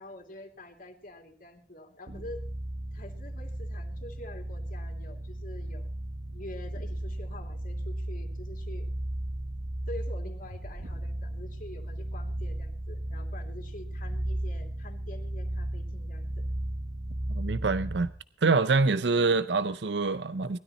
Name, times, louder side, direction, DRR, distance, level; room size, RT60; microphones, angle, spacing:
voice 1, 0.0-2.4 2.9-5.9 6.3-8.9 9.9-16.5, left 1 dB, 50° left, 2.9 m, -46 dB
sound 1, 2.1-18.2, right 1 dB, 55° right, 1.4 m, -35 dB
voice 2, 17.3-18.1 18.4-20.6, right 3 dB, 75° right, 0.6 m, -25 dB
19.5 x 13.0 x 4.3 m
head